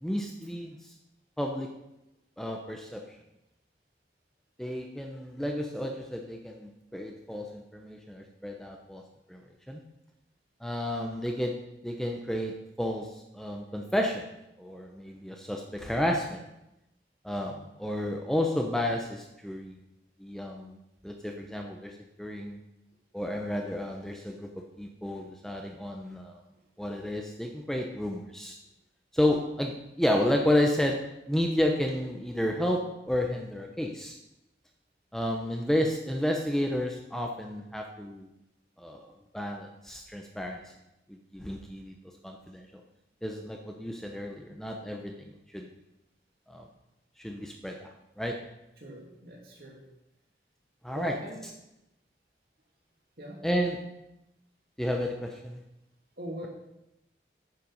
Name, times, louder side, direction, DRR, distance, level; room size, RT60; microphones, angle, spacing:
voice 1, 0.0-0.7 1.4-1.7 2.4-3.0 4.6-9.0 9.3-9.4 9.7-9.8 10.6-11.6 11.8-13.1 13.3-14.2 14.6-16.4 17.2-19.8 20.2-20.8 21.0-21.9 22.2-22.6 23.1-24.5 24.8-26.4 26.8-28.6 29.1-34.2 35.1-38.3 38.8-39.1 39.3-40.7 41.1-41.9 42.2-42.7 43.2-45.1 45.5-45.7 46.5-46.7 47.2-47.9 48.2-48.4 50.8-51.2 53.4-53.8 54.8-55.6, left 1 dB, 5° left, 2 dB, 0.7 m, -31 dB
voice 2, 48.8-49.8 50.9-51.4 53.2-53.4 56.2-56.5, equal, 55° right, -2 dB, 2.7 m, -41 dB
9.5 x 7.5 x 5.5 m, 0.89 s
head